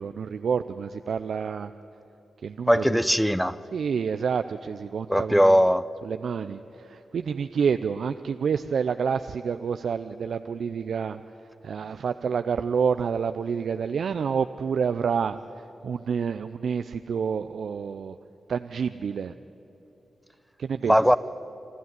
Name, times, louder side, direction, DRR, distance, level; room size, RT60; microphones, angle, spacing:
voice 1, 0.0-1.7 2.4-3.0 3.7-5.6 6.0-11.2 11.6-18.2 18.5-19.3 20.6-20.9, right 6 dB, 75° right, 0.5 m, -28 dB
voice 2, 2.7-3.6 5.1-5.8 20.9-21.2, equal, ahead, 0.9 m, -19 dB
27.0 x 12.5 x 9.5 m
supercardioid pair, 40°, 0 cm